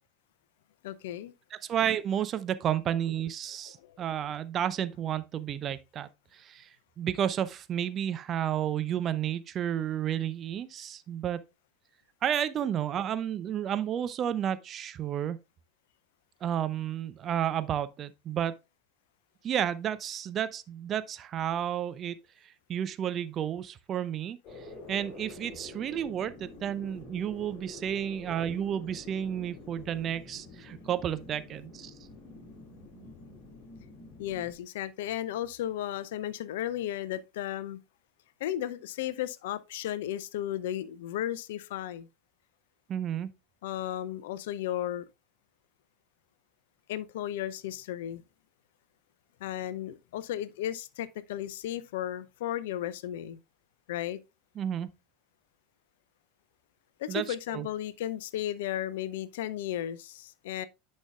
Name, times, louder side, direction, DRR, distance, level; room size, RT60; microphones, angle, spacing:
voice 1, 0.8-1.3 3.6-4.0 34.2-37.8 38.4-42.1 43.6-45.0 46.9-48.2 49.4-53.4 53.9-54.2 57.0-60.7, left 12 dB, 65° left, 0.4 m, -34 dB
voice 2, 1.5-6.1 6.4-6.7 7.0-11.4 12.2-15.4 16.4-18.5 19.4-22.2 22.7-24.4 24.9-31.9 42.9-43.3 54.6-54.9 57.1-57.7, right 10 dB, 35° right, 0.5 m, -31 dB
sound 1, 24.4-34.6, left 2 dB, 40° left, 2.6 m, -48 dB
9.8 x 5.3 x 2.3 m
figure-of-eight pair, 80°, 0 cm